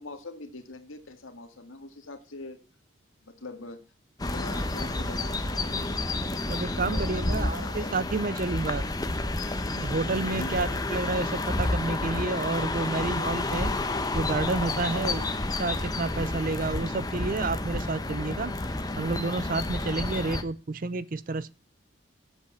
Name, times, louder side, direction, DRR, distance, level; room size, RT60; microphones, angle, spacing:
voice 1, 0.0-2.6 3.2-3.8 4.3-5.8 6.9-7.9 10.3-10.7 14.9-15.3, left 2 dB, 85° left, 1.9 m, -42 dB
sound 1, 4.2-20.4, left 2 dB, 20° left, 0.8 m, -30 dB
voice 2, 6.5-8.8 9.7-13.7 14.1-15.2 15.6-18.5 19.0-21.5, right 3 dB, 45° right, 0.5 m, -30 dB
8.2 x 8.1 x 6.9 m
head